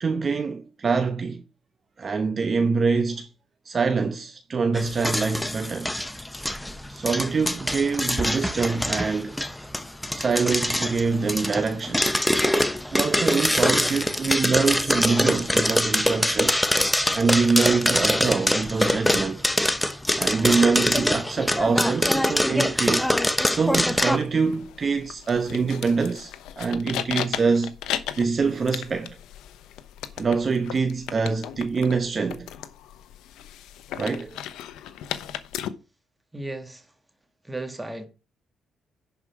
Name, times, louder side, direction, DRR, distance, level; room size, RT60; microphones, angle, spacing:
voice 1, 0.0-1.4 2.0-3.3 3.6-5.9 6.9-9.4 10.1-12.1 12.9-16.5 17.1-19.4 20.2-23.1 23.5-27.7 28.2-29.2 30.2-32.5 34.0-34.3, right 4 dB, 40° right, 1.0 m, -24 dB
sound 1, 4.7-24.2, left 1 dB, 5° left, 0.9 m, -24 dB
sound 2, 23.9-35.7, left 11 dB, 90° left, 0.9 m, -36 dB
voice 2, 36.3-36.9 37.4-38.1, right 2 dB, 10° right, 2.2 m, -35 dB
11.0 x 4.9 x 6.0 m
cardioid pair, 90°, 0 cm